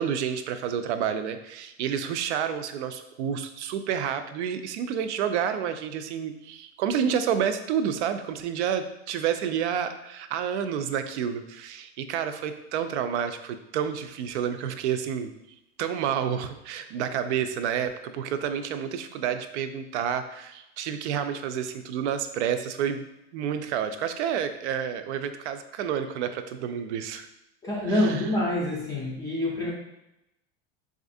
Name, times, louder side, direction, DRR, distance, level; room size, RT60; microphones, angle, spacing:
voice 1, 0.0-15.3 15.8-23.1 23.3-27.3 27.9-28.3, right 8 dB, 80° right, 9 dB, 0.5 m, -29 dB
voice 2, 27.6-29.7, left 1 dB, 10° left, -5 dB, 0.4 m, -26 dB
4.1 x 2.4 x 2.6 m, 0.88 s
supercardioid pair, 150°, 34 cm